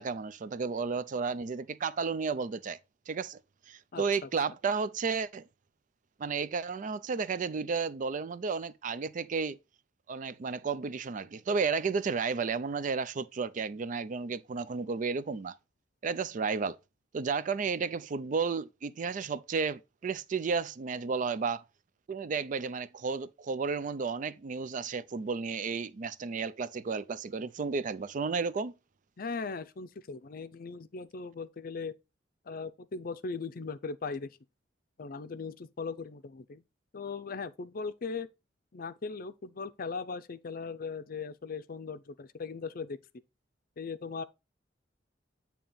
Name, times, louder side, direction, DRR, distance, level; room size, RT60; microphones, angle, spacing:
voice 1, 0.0-2.8 3.1-3.4 3.7-5.4 6.2-9.6 10.1-15.5 16.0-16.8 17.1-21.6 22.1-28.7, right 5 dB, 45° right, 0.4 m, -32 dB
voice 2, 3.9-4.3 29.2-31.9 32.5-34.4 35.0-36.6 36.9-38.3 38.7-43.0 43.8-44.2, left 4 dB, 50° left, 0.5 m, -39 dB
8.6 x 2.9 x 5.4 m
head